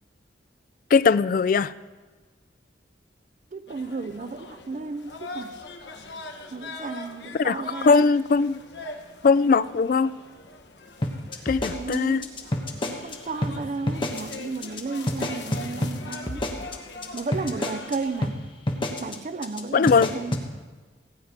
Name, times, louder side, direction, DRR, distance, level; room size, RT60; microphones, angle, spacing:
voice 1, 0.9-1.7 7.4-8.6 9.2-10.1 11.5-12.2 19.7-20.1, left 4 dB, 50° left, 0.3 m, -20 dB
voice 2, 3.5-5.6 6.5-8.1 11.7-12.3 12.9-16.5 17.1-18.5 19.0-20.4, right 4 dB, 40° right, 0.4 m, -33 dB
sound 1, 3.7-18.3, left 2 dB, 70° left, 1.2 m, -42 dB
sound 2, 11.0-13.1 13.4-13.5 13.9-14.3 14.6-14.8 15.1-17.9 18.2-18.3 18.7-19.1 19.4-19.6 19.9-20.4, left 1 dB, 25° left, 1.1 m, -28 dB
16.0 x 9.4 x 5.1 m
head